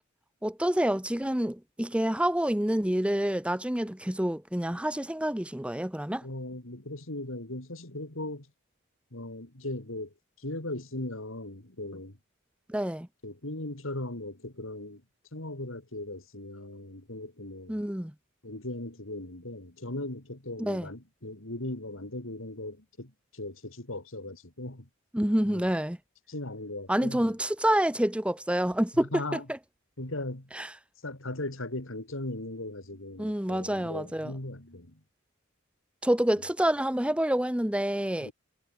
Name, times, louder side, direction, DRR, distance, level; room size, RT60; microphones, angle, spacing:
voice 1, 0.4-6.3 12.7-13.1 17.7-18.1 20.6-20.9 25.1-26.0 26.9-29.6 30.5-30.7 33.2-34.3 36.0-38.3, right 1 dB, 5° right, 0.9 m, -28 dB
voice 2, 6.2-8.5 9.1-12.2 13.2-15.0 15.3-17.8 18.4-24.9 25.5-25.6 26.3-27.4 28.9-29.5 30.0-30.5 31.0-35.0 38.2-38.3, left 1 dB, 75° left, 3.6 m, -38 dB
head